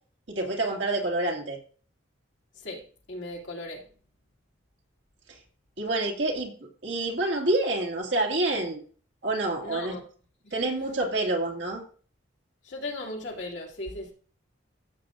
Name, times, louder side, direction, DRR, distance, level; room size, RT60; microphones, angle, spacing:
voice 1, 0.3-1.6 5.3-5.4 5.8-6.5 6.8-8.8 9.2-10.0 10.5-11.8, right 2 dB, 65° right, 0 dB, 2.3 m, -27 dB
voice 2, 3.1-3.8 9.6-10.0 10.4-10.5 12.6-14.1, left 2 dB, 65° left, -1 dB, 2.6 m, -37 dB
15.0 x 7.4 x 2.5 m, 0.42 s
head